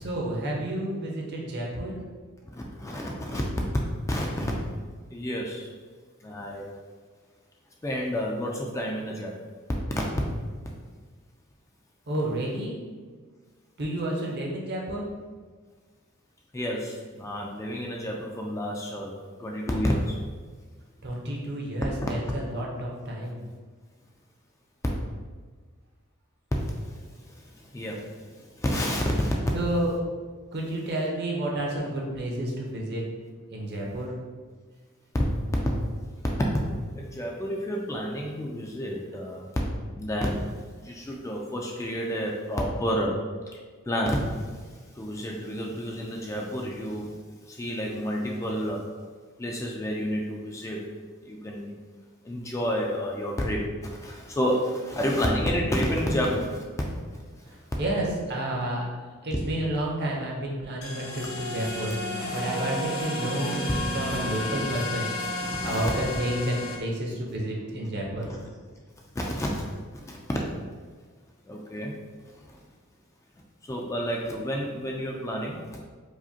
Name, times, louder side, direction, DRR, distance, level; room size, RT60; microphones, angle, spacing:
voice 1, 0.0-2.0 12.1-12.7 13.8-15.0 21.0-23.4 29.5-29.9 30.5-33.0 33.5-34.1 57.8-58.9 59.2-61.9 62.3-65.1 65.6-68.3, right 1 dB, 50° right, -2 dB, 0.7 m, -30 dB
voice 2, 2.5-3.5 4.1-4.5 5.1-5.7 6.2-6.7 7.8-9.5 16.5-19.1 19.4-20.2 22.0-22.1 26.5-29.5 37.0-39.5 39.9-40.4 40.7-43.2 43.5-43.6 43.9-47.1 47.4-48.8 49.4-50.8 51.2-51.7 52.2-56.6 65.4-65.9 68.2-68.4 69.1-69.6 69.9-70.4 71.5-72.0 72.3-72.6 73.6-75.8, equal, 15° left, -1 dB, 0.3 m, -30 dB
sound 1, 60.8-66.8, left 1 dB, 70° left, 0.7 m, -32 dB
4.8 x 2.1 x 2.7 m, 1.5 s
head